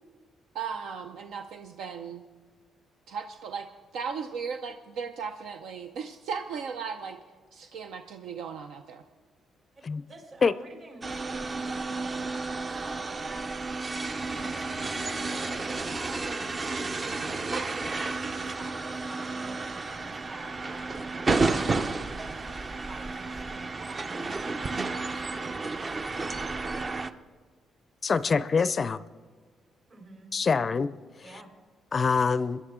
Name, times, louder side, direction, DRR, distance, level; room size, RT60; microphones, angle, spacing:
voice 1, 0.5-2.2 3.1-3.7 3.9-7.2 7.5-9.0, right 6 dB, 80° right, 7 dB, 0.6 m, -36 dB
voice 2, 9.8-13.9 14.3-21.6 22.9-26.4 28.3-28.4 29.9-30.3 31.2-31.5, right 2 dB, 50° right, 1 dB, 4.0 m, -49 dB
sound 1, 11.0-27.1, right 3 dB, 35° right, 0.6 m, -32 dB
voice 3, 28.0-29.0 30.3-30.9 31.9-32.6, left 5 dB, 40° left, 16 dB, 0.4 m, -24 dB
21.0 x 11.0 x 3.7 m, 1.5 s
cardioid pair, 90°, 0 cm